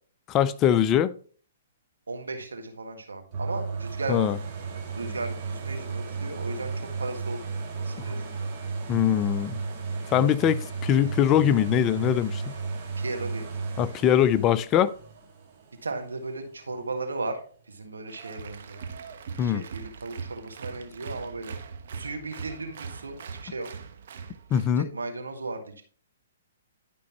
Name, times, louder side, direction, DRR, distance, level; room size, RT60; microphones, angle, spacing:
voice 1, 0.3-1.1 4.1-4.4 8.9-9.6 10.1-12.6 13.8-14.9 19.4-19.6 24.5-24.9, left 10 dB, 25° left, 0.4 m, -22 dB
voice 2, 2.1-4.3 4.9-6.7 7.0-7.4 7.8-8.2 13.0-13.5 15.8-17.4 17.7-18.8 19.4-21.5 21.9-23.7 24.8-25.8, right 3 dB, 90° right, 1.6 m, -35 dB
sound 1, 3.3-17.0 17.5-17.6, right 4 dB, 35° right, 2.2 m, -34 dB
Applause, 18.1-24.7, right 5 dB, 60° right, 1.0 m, -41 dB
11.5 x 5.2 x 2.9 m
hypercardioid pair, 130°, 0 cm